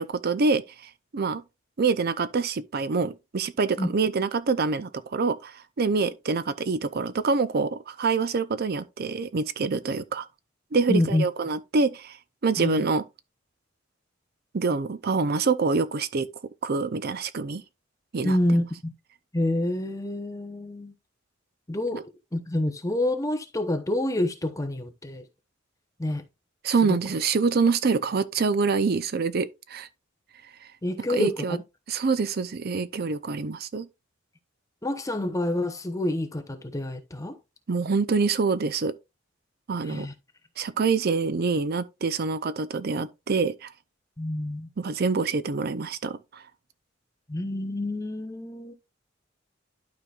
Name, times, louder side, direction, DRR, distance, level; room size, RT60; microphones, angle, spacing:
voice 1, 0.0-1.4 1.8-10.3 10.7-12.2 12.4-13.0 14.5-16.3 16.6-17.6 18.1-18.4 21.9-22.0 26.6-29.9 31.1-31.6 31.9-33.9 37.7-38.9 39.7-40.1 40.6-43.7 44.8-46.4, right 4 dB, 50° right, 0.5 m, -26 dB
voice 2, 10.9-11.2 12.6-12.9 18.2-18.9 19.3-20.9 21.7-22.0 22.3-25.2 26.0-26.2 26.8-27.0 30.8-31.6 34.8-37.4 39.8-40.1 44.2-44.7 47.3-48.7, left 1 dB, 15° left, 0.9 m, -27 dB
12.0 x 5.0 x 2.4 m
head